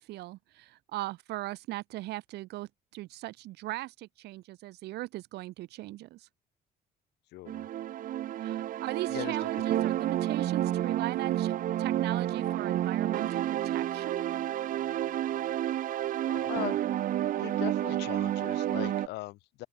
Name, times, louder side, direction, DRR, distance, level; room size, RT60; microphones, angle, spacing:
voice 1, 0.0-6.3 8.4-14.4, right 17 dB, 80° right, 1.0 m, -38 dB
voice 2, 7.3-7.7 9.1-9.5 16.2-16.8 17.4-19.7, left 19 dB, 85° left, 1.8 m, -39 dB
sound 1, 7.5-19.1, right 12 dB, 55° right, 0.6 m, -30 dB
open air
cardioid pair, 110°, 17 cm